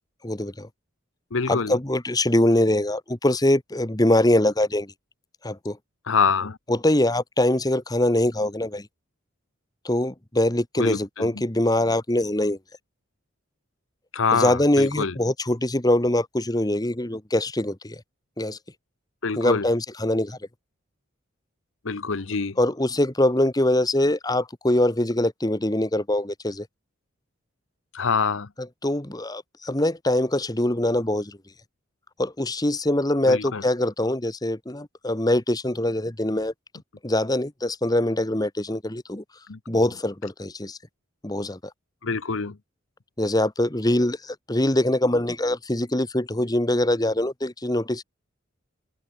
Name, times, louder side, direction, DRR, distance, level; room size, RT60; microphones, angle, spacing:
voice 1, 0.2-0.7 1.5-4.9 5.4-5.8 6.7-8.9 9.8-12.6 14.3-18.0 18.4-18.6 19.4-20.4 22.6-26.7 28.8-31.4 32.2-36.5 37.0-39.2 39.7-40.8 41.2-41.6 43.2-48.0, left 1 dB, 20° left, 1.3 m, -23 dB
voice 2, 1.3-1.8 6.1-6.6 10.8-11.3 14.1-15.1 19.2-19.7 21.8-22.6 27.9-28.5 33.3-33.6 39.5-39.6 42.0-42.6, left 5 dB, 70° left, 0.9 m, -25 dB
open air
head